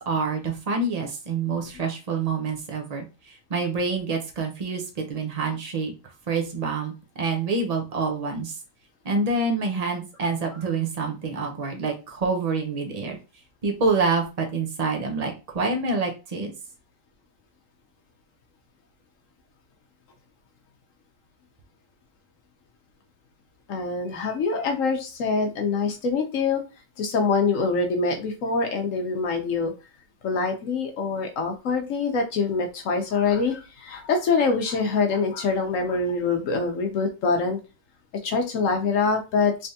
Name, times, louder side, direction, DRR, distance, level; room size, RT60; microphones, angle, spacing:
voice 1, 0.0-5.9 6.3-6.9 7.2-8.6 9.0-13.2 13.6-16.5, right 4 dB, 60° right, 2 dB, 0.4 m, -27 dB
voice 2, 23.7-26.6 27.0-29.7 30.2-37.6 38.2-39.7, left 4 dB, 60° left, 4 dB, 0.9 m, -24 dB
3.4 x 3.3 x 2.7 m, 0.30 s
omnidirectional pair, 1.8 m